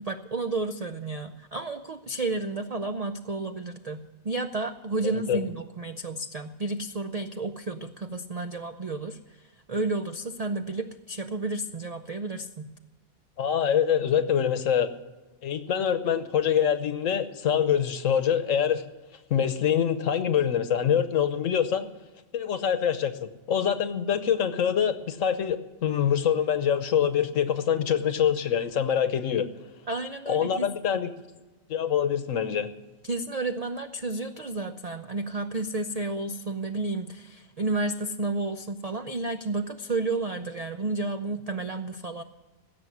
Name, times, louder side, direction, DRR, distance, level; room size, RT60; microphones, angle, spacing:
voice 1, 0.0-9.2 9.7-12.7 29.9-30.7 33.0-42.2, right 3 dB, 55° right, 8 dB, 0.4 m, -31 dB
voice 2, 5.0-5.5 13.4-14.9 15.4-18.8 19.3-21.9 22.3-29.5 30.3-31.1 31.7-32.7, left 8 dB, 65° left, 11 dB, 1.2 m, -25 dB
16.5 x 6.9 x 9.4 m, 1.2 s
omnidirectional pair, 1.5 m